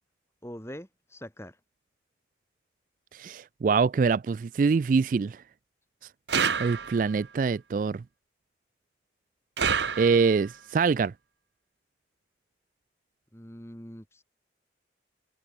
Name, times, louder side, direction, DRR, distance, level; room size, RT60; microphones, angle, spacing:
voice 1, 0.4-1.6 13.3-14.2, equal, 15° left, 6.0 m, -43 dB
voice 2, 3.1-5.4 6.6-8.0 10.0-11.1, right 5 dB, 45° right, 0.3 m, -24 dB
sound 1, 6.3-7.2 9.6-10.5, right 6 dB, 75° right, 1.2 m, -28 dB
open air
head